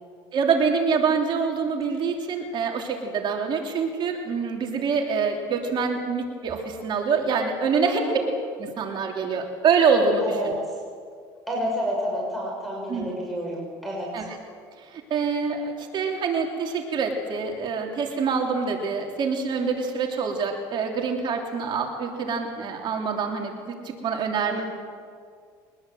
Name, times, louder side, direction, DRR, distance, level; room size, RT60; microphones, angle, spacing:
voice 1, 0.3-8.1 8.6-10.5 12.9-13.1 14.1-14.2 14.9-24.6, right 5 dB, 50° right, 2 dB, 3.1 m, -25 dB
voice 2, 7.8-8.2 10.2-10.5 11.5-14.3 24.5-24.6, equal, ahead, -4 dB, 6.2 m, -30 dB
23.0 x 20.0 x 7.8 m, 2.1 s
supercardioid pair, 100°, 10 cm